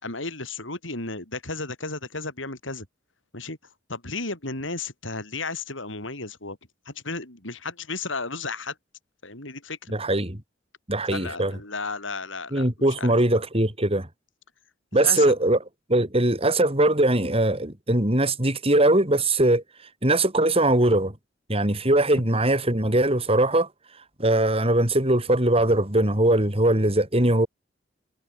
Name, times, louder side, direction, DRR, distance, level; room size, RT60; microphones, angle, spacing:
voice 1, 0.0-2.9 3.3-3.6 3.9-6.6 6.9-8.8 9.2-9.9 11.1-13.1 14.9-15.4, left 3 dB, 80° left, 7.2 m, -34 dB
voice 2, 9.9-10.4 10.9-11.5 12.5-14.1 14.9-15.6 15.9-19.6 20.0-21.1 21.5-23.7 24.2-27.5, right 1 dB, 30° right, 4.5 m, -21 dB
head